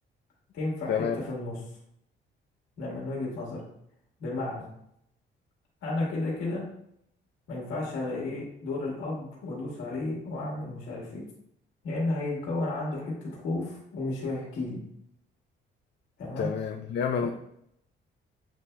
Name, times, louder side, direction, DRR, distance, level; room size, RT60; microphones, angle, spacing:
voice 1, 0.5-1.5 2.8-3.6 4.2-4.6 5.8-6.6 7.5-11.2 11.8-14.8 16.2-16.5, left 2 dB, 85° left, -3 dB, 1.6 m, -32 dB
voice 2, 16.4-17.3, left 7 dB, 60° left, 3 dB, 0.4 m, -28 dB
7.7 x 2.7 x 2.2 m, 0.75 s
cardioid pair, 90°, 20 cm